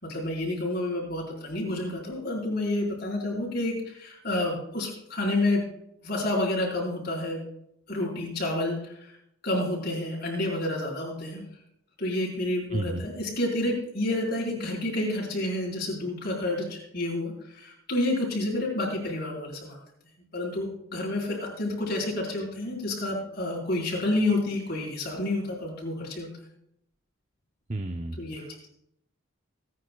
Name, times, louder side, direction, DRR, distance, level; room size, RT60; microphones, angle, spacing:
voice 1, 0.0-5.6 6.0-7.4 7.9-9.1 9.4-11.4 12.0-19.8 20.3-26.3 28.2-28.4, left 1 dB, 45° left, -4 dB, 4.6 m, -29 dB
voice 2, 12.7-13.0 27.7-28.7, right 2 dB, 30° right, 5 dB, 0.6 m, -33 dB
24.0 x 9.5 x 2.3 m, 0.77 s
head